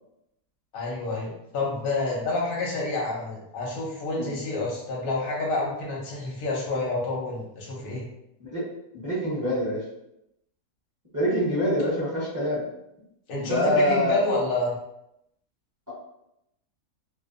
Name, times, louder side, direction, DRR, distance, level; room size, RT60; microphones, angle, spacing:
voice 1, 0.7-8.0 13.3-14.8, left 2 dB, 50° left, -3 dB, 0.7 m, -29 dB
voice 2, 9.0-9.8 11.1-12.6 13.4-14.2, equal, 20° right, -10 dB, 0.6 m, -25 dB
2.6 x 2.2 x 2.5 m, 0.83 s
omnidirectional pair, 1.6 m